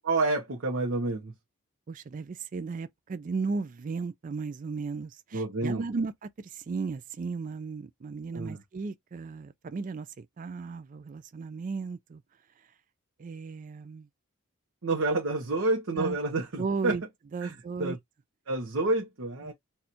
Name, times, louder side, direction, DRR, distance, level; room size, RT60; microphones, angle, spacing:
voice 1, 0.0-1.3 5.3-5.8 8.3-8.6 14.8-17.0 17.4-18.0 18.5-19.5, right 2 dB, 60° right, 0.8 m, -29 dB
voice 2, 1.9-12.2 13.2-14.1 16.0-16.2 16.6-17.0 17.3-18.0 19.4-19.5, right 4 dB, 35° right, 0.3 m, -35 dB
4.2 x 2.3 x 2.8 m
head